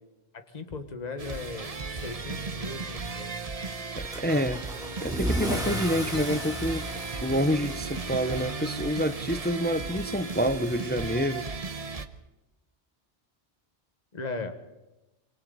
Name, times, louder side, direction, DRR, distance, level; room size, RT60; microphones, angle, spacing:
voice 1, 0.3-3.4 14.1-14.6, left 3 dB, 35° left, 1.7 m, -38 dB
sound 1, 1.2-12.1, right 4 dB, 35° right, 1.0 m, -36 dB
voice 2, 3.9-4.6 5.0-6.8 7.2-11.4, equal, 15° left, 0.5 m, -28 dB
Car / Engine starting / Accelerating revving vroom, 4.1-11.5, equal, 5° right, 3.6 m, -36 dB
sound 2, 4.3-4.9 5.6-6.5 7.1-7.9 8.4-8.8, left 3 dB, 70° left, 3.2 m, -51 dB
27.0 x 24.5 x 4.1 m
omnidirectional pair, 1.2 m